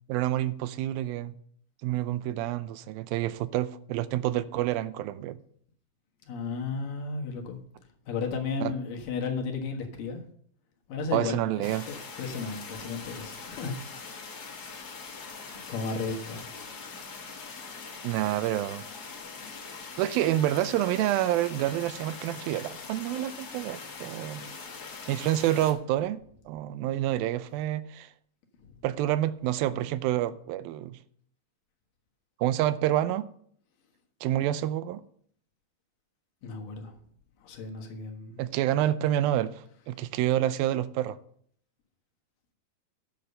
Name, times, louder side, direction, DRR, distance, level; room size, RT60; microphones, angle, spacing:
voice 1, 0.1-1.4 1.8-5.4 8.6-8.8 11.1-11.9 18.0-18.8 20.0-24.5 25.1-28.1 28.8-31.0 32.4-33.3 34.2-35.0 38.4-41.2, right 13 dB, 90° right, 2.4 m, -28 dB
voice 2, 6.3-7.6 8.1-10.2 10.9-13.7 15.7-16.5 19.4-19.6 28.6-28.8 36.4-37.0 37.4-38.4, left 4 dB, 70° left, 3.1 m, -34 dB
sound 1, 11.6-25.7, left 4 dB, 55° left, 1.1 m, -42 dB
10.5 x 6.8 x 6.5 m
omnidirectional pair, 4.1 m